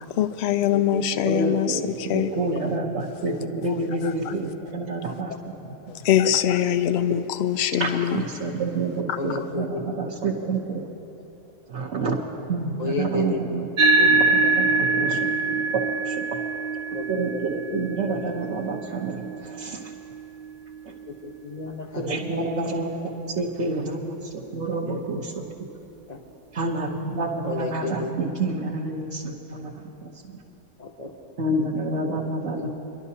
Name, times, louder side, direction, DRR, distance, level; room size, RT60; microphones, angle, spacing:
voice 1, 0.2-2.3 3.7-3.8 4.0-4.3 6.0-8.3, left 10 dB, 65° left, 11 dB, 0.7 m, -23 dB
voice 2, 1.2-6.1 8.1-10.8 11.7-12.2 12.5-13.7 14.0-16.3 17.1-19.8 22.0-25.4 26.5-30.4 31.4-32.7, right 3 dB, 55° right, -5 dB, 1.3 m, -29 dB
voice 3, 9.2-10.1 12.8-13.4 13.8-14.1 14.4-14.5 16.9-18.5 20.8-20.9 21.2-22.8 24.9-25.2 26.1-26.2 27.4-28.1 30.8-31.1 31.6-31.7 32.0-32.2 32.6-32.7, left 3 dB, 35° left, 2 dB, 0.9 m, -33 dB
sound 1, 13.8-22.5, right 3 dB, 75° right, 0.4 m, -25 dB
27.0 x 12.0 x 2.8 m, 3.0 s
omnidirectional pair, 1.5 m